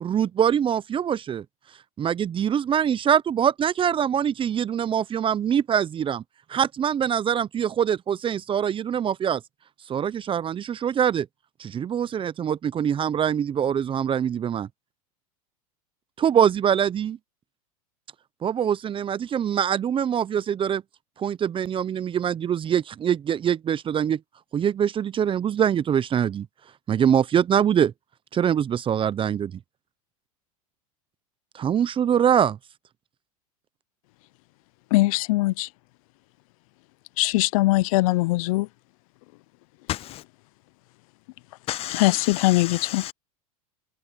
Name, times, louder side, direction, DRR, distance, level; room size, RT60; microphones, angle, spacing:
voice 1, 0.0-1.4 2.0-6.2 6.5-9.4 9.9-11.3 11.6-14.7 16.2-17.2 18.4-20.8 21.2-24.2 24.5-26.5 26.9-27.9 28.3-29.5 31.5-32.6, right 8 dB, 25° right, 0.8 m, -23 dB
voice 2, 34.9-35.7 37.2-38.7 41.9-43.0, left 20 dB, 65° left, 0.7 m, -21 dB
voice 3, 41.7-43.1, left 14 dB, 30° left, 0.4 m, -33 dB
hypercardioid pair, 100°, 19 cm